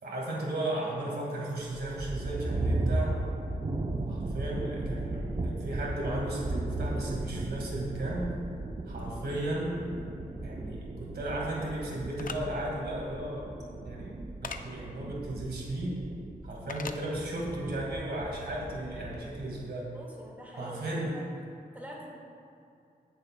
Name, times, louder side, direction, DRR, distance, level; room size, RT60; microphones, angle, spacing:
voice 1, 0.0-3.2 4.1-8.3 8.9-9.8 10.4-13.5 13.8-14.1 14.4-15.9 16.4-19.9 20.6-21.1, right 1 dB, 85° right, -3 dB, 1.9 m, -35 dB
sound 1, 1.7-19.7, right 2 dB, 35° right, 0.7 m, -36 dB
sound 2, 12.2-12.4 14.4-14.6 16.7-17.0, left 5 dB, 55° left, 0.6 m, -38 dB
voice 2, 19.9-20.9 21.1-21.3 21.7-22.1, equal, 10° right, -4 dB, 1.9 m, -45 dB
17.0 x 6.8 x 2.3 m, 2.5 s
wide cardioid pair, 80°, 17 cm